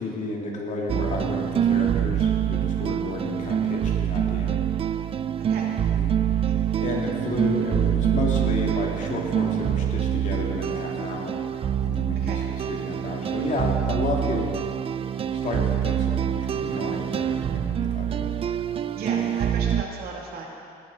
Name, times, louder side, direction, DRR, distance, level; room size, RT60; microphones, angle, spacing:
voice 1, 0.0-4.6 6.0-6.4 6.8-11.4 11.8-14.6 15.3-18.3, left 2 dB, 45° left, -1 dB, 2.4 m, -32 dB
sound 1, 0.9-19.8, right 9 dB, 35° right, 0.4 m, -25 dB
voice 2, 5.4-5.7 6.4-6.5 12.1-12.4 18.9-20.5, right 4 dB, 65° right, -1 dB, 2.4 m, -35 dB
17.5 x 11.0 x 4.0 m, 2.5 s
cardioid pair, 110°, 17 cm